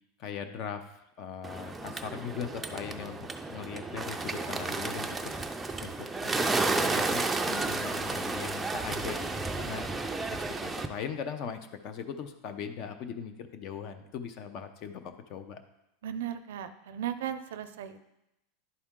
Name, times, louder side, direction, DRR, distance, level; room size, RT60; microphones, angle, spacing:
voice 1, 0.2-5.3 5.8-5.9 6.2-9.9 10.3-15.0 15.3-15.6, left 7 dB, 45° left, 9 dB, 0.7 m, -40 dB
Bird, 1.4-10.9, right 3 dB, 10° right, 0.4 m, -32 dB
voice 2, 16.0-18.0, right 10 dB, 85° right, 11 dB, 0.5 m, -36 dB
10.5 x 4.2 x 3.7 m, 0.88 s
supercardioid pair, 140°, 0 cm